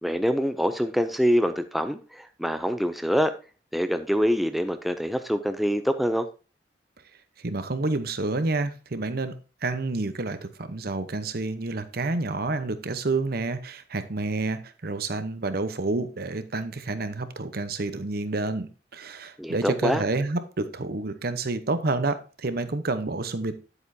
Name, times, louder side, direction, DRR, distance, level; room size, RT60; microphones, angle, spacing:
voice 1, 0.0-3.3 3.7-6.3 19.4-20.0, equal, ahead, 8 dB, 0.4 m, -25 dB
voice 2, 7.4-9.3 9.6-23.5, right 3 dB, 55° right, 10 dB, 0.9 m, -29 dB
9.7 x 8.1 x 2.7 m, 0.33 s
head